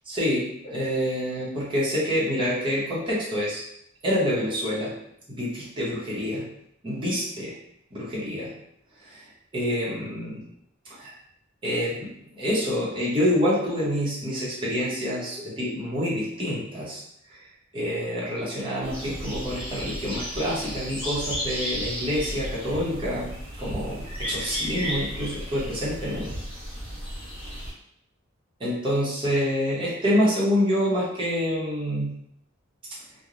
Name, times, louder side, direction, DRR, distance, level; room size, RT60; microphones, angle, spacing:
voice 1, 0.1-3.6 4.0-4.9 5.3-6.5 6.8-7.6 7.9-8.5 9.0-10.5 10.8-11.1 11.6-17.0 17.3-17.5 17.7-23.3 23.6-26.4 28.6-32.2, equal, 25° right, -8 dB, 0.9 m, -27 dB
sound 1, 18.8-27.7, equal, 5° left, 1.4 m, -34 dB
3.0 x 2.2 x 2.5 m, 0.73 s
head